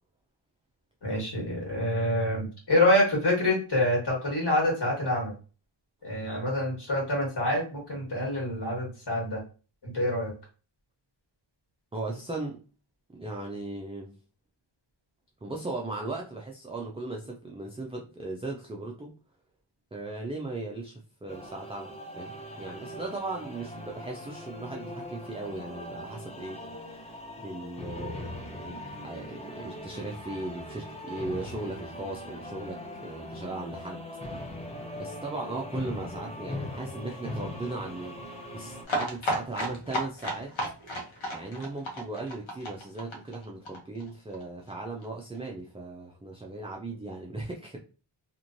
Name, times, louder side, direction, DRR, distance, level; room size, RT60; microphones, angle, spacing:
voice 1, 1.0-5.3 6.0-9.4 9.8-10.3, left 1 dB, 55° left, -2 dB, 1.6 m, -26 dB
voice 2, 11.9-12.6 13.1-14.1 15.4-19.1 19.9-34.0 35.0-40.5 41.3-47.8, right 2 dB, 15° right, -1 dB, 0.4 m, -38 dB
sound 1, 21.3-38.8, left 1 dB, 15° left, 0.7 m, -40 dB
sound 2, 38.8-44.4 44.7-44.8 45.0-45.1 45.3-45.4, equal, 80° left, 0.9 m, -33 dB
3.0 x 2.5 x 2.6 m, 0.35 s
wide cardioid pair, 95°, 47 cm